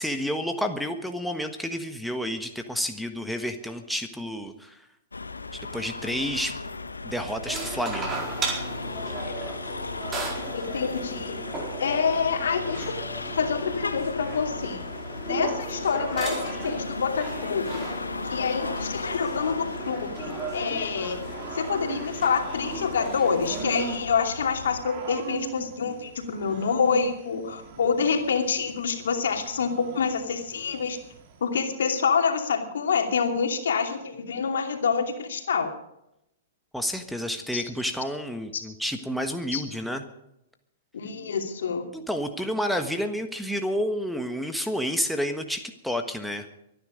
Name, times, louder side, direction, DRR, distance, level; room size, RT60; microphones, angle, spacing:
voice 1, 0.0-4.8 5.5-6.6 7.0-8.2 36.7-40.0 41.9-46.5, equal, ahead, 5 dB, 1.4 m, -30 dB
sound 1, 5.1-24.8, left 3 dB, 85° left, 1.2 m, -36 dB
sound 2, 7.5-24.0, right 3 dB, 20° right, 4.4 m, -36 dB
voice 2, 10.5-11.4 11.8-12.9 13.3-14.8 15.3-17.8 18.2-21.2 21.5-31.0 31.4-35.7 37.5-37.6 38.5-38.6 39.5-39.6 40.9-41.8, left 6 dB, 70° left, 4 dB, 2.7 m, -27 dB
Growling / Cricket, 20.6-31.5, right 6 dB, 45° right, 2.9 m, -41 dB
23.5 x 10.5 x 5.1 m, 0.82 s
figure-of-eight pair, 110°, 0 cm